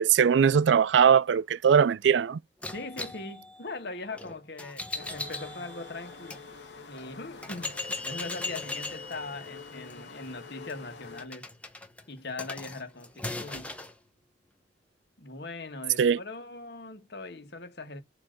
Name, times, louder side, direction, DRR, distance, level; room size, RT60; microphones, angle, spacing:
voice 1, 0.0-2.4 16.0-16.2, right 7 dB, 85° right, 0.4 m, -21 dB
sound 1, 2.6-6.4 7.0-7.1 7.4-13.9, left 2 dB, 10° left, 1.1 m, -39 dB
voice 2, 2.7-6.4 6.9-11.5 12.1-13.7 15.2-18.0, left 3 dB, 65° left, 1.6 m, -40 dB
sound 2, 5.0-11.2, left 4 dB, 80° left, 1.3 m, -47 dB
7.8 x 3.2 x 3.8 m
head